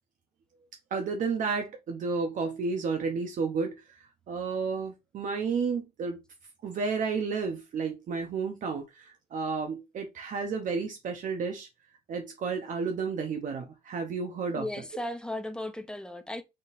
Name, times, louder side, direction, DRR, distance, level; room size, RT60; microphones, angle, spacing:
voice 1, 0.9-6.2 6.6-11.7 12.1-14.7, right 5 dB, 50° right, 0.9 m, -32 dB
voice 2, 14.6-16.4, left 1 dB, 5° left, 0.6 m, -36 dB
4.0 x 3.9 x 2.6 m
cardioid pair, 110°, 17 cm